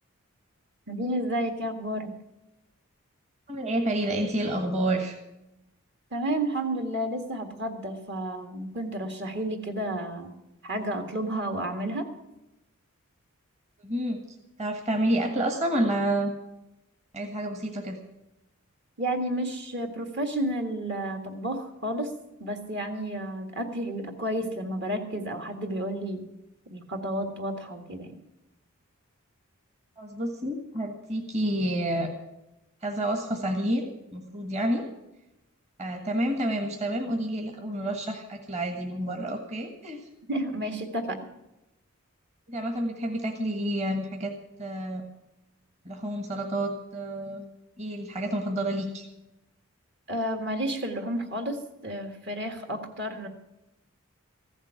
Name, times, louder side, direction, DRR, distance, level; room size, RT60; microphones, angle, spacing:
voice 1, 0.9-2.1 6.1-10.3 10.6-12.1 19.0-22.1 22.4-26.2 26.7-28.2 40.3-41.2 50.1-53.3, right 1 dB, 50° right, 5 dB, 1.8 m, -31 dB
voice 2, 3.5-5.2 13.8-16.3 17.1-18.0 30.0-32.1 32.8-34.9 35.8-40.1 42.5-45.0 45.8-47.4 47.8-49.0, right 1 dB, 30° right, 3 dB, 1.5 m, -29 dB
15.0 x 7.4 x 9.6 m, 0.92 s
head